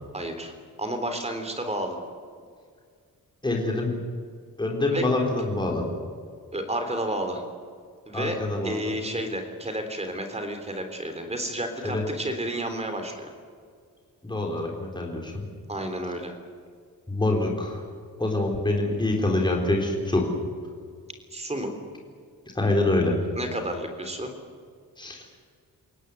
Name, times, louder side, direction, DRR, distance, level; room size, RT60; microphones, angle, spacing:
voice 1, 0.1-2.0 4.9-5.1 6.5-7.4 8.1-13.3 15.7-16.3 21.3-21.7 23.4-24.3, right 1 dB, 20° right, 6 dB, 3.6 m, -31 dB
voice 2, 3.4-3.9 4.6-5.8 8.1-8.9 11.8-12.0 14.2-15.5 17.1-17.8 18.2-20.2 22.6-23.2 25.0-25.2, left 2 dB, 15° left, 0 dB, 4.0 m, -25 dB
29.5 x 17.5 x 9.3 m, 2.1 s
wide cardioid pair, 175°, 34 cm